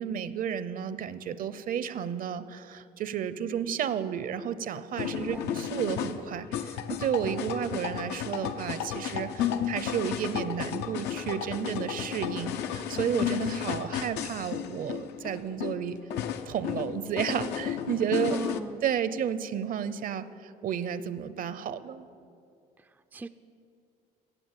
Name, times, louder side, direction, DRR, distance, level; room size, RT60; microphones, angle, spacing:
voice 1, 0.0-16.0 16.5-18.4 18.8-22.1, right 8 dB, 55° right, 14 dB, 0.7 m, -32 dB
sound 1, 5.0-18.6, left 9 dB, 85° left, 0.8 m, -33 dB
voice 2, 5.1-5.5 18.3-18.8 22.8-23.3, right 3 dB, 10° right, 9 dB, 0.4 m, -39 dB
16.0 x 8.1 x 7.4 m, 2.5 s
cardioid pair, 110°, 17 cm